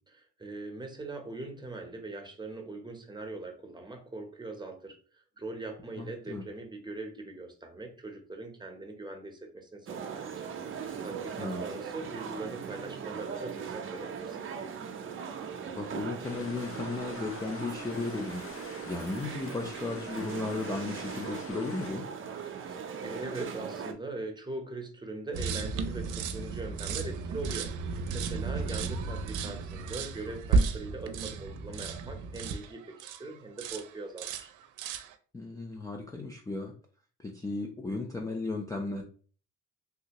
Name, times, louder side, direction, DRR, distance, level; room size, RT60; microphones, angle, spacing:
voice 1, 0.4-14.4 22.5-34.5, right 2 dB, 15° right, 3 dB, 0.8 m, -41 dB
voice 2, 6.0-6.4 11.4-11.6 15.7-18.4 18.9-22.0 28.8-28.9 35.3-36.7 37.2-39.0, left 3 dB, 10° left, 2 dB, 0.4 m, -35 dB
sound 1, 9.9-23.9, right 7 dB, 45° right, 0.6 m, -39 dB
sound 2, 16.2-21.9, left 5 dB, 50° left, 0.7 m, -47 dB
sound 3, 25.3-33.2 33.6-33.9 34.2-35.1, right 4 dB, 85° right, 0.5 m, -33 dB
3.4 x 2.7 x 2.9 m, 0.41 s
cardioid pair, 90°, 30 cm